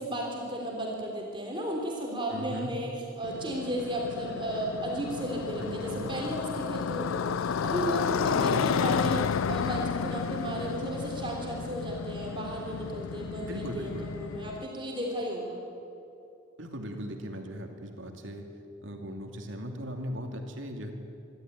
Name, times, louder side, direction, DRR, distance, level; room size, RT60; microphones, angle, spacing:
voice 1, 0.0-2.9 3.2-15.6, right 1 dB, 25° right, -1 dB, 3.4 m, -34 dB
voice 2, 2.3-2.8 5.6-6.1 8.3-8.7 13.5-14.1 16.6-18.5 18.8-20.9, equal, 70° right, 3 dB, 2.7 m, -38 dB
Motorcycle, 3.2-14.7, left 6 dB, 85° left, 0.4 m, -32 dB
25.5 x 13.0 x 9.4 m, 2.8 s
head